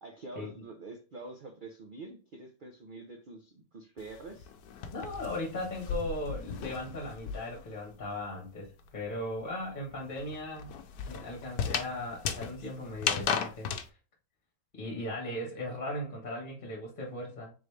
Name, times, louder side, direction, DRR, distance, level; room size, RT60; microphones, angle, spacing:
voice 1, 0.0-4.5, right 3 dB, 50° right, 3 dB, 0.6 m, -46 dB
sound 1, 4.0-7.7 8.0-13.9, left 7 dB, 85° left, 1.1 m, -36 dB
voice 2, 4.9-10.8 11.0-14.0 14.7-17.5, left 1 dB, 35° left, -1 dB, 1.5 m, -38 dB
4.0 x 3.1 x 3.2 m, 0.35 s
omnidirectional pair, 1.6 m